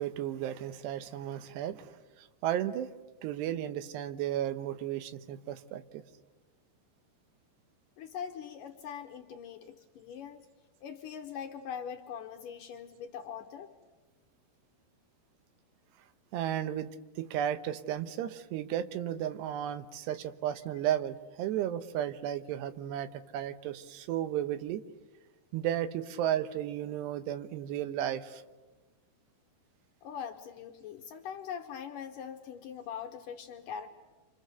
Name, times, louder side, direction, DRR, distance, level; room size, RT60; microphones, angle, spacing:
voice 1, 0.0-1.9 2.4-2.9 3.2-6.0 16.3-16.9 17.2-24.8 25.5-28.4, right 11 dB, 80° right, 12 dB, 3.0 m, -34 dB
voice 2, 8.0-10.4 10.8-13.7 30.0-33.9, left 8 dB, 70° left, 5 dB, 2.2 m, -42 dB
29.0 x 25.5 x 6.8 m, 1.2 s
omnidirectional pair, 4.8 m